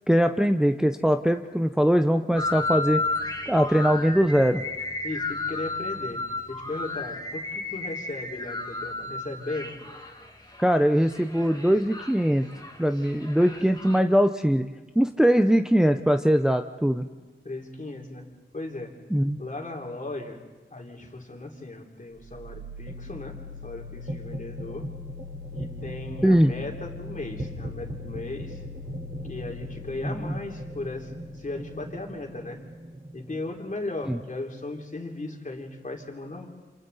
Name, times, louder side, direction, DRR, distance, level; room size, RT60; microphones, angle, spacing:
voice 1, 0.1-3.0 3.5-4.6 10.6-12.5 12.8-14.7 15.0-17.0 19.1-19.4 26.2-26.5 30.0-30.3 34.1-34.2, equal, 5° right, 6 dB, 0.7 m, -21 dB
sound 1, 2.4-14.0, left 3 dB, 20° left, 2.2 m, -33 dB
voice 2, 5.0-6.2 6.5-9.8 17.4-18.2 18.5-18.9 19.4-20.4 20.7-23.4 23.6-24.8 25.5-28.6 29.2-32.6 33.1-36.5, left 2 dB, 40° left, 1 dB, 3.3 m, -36 dB
sound 2, 22.2-34.1, left 1 dB, 40° right, 4.2 m, -38 dB
28.0 x 27.5 x 4.1 m, 1.3 s
wide cardioid pair, 65°, 20 cm